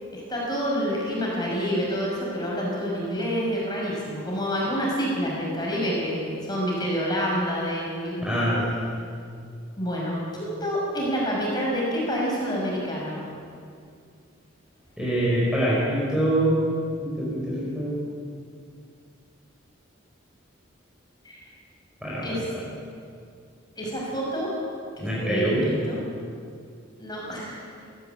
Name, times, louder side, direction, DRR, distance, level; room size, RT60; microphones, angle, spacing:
voice 1, 0.1-8.4 9.8-13.2 21.2-21.4 22.2-22.5 23.8-24.5 25.0-26.0 27.0-27.8, equal, 20° left, -4 dB, 6.4 m, -28 dB
voice 2, 8.2-8.7 15.0-16.6 17.0-17.9 22.0-22.4 25.0-25.7, right 1 dB, 5° right, -7 dB, 5.3 m, -24 dB
22.5 x 15.0 x 8.6 m, 2.3 s
head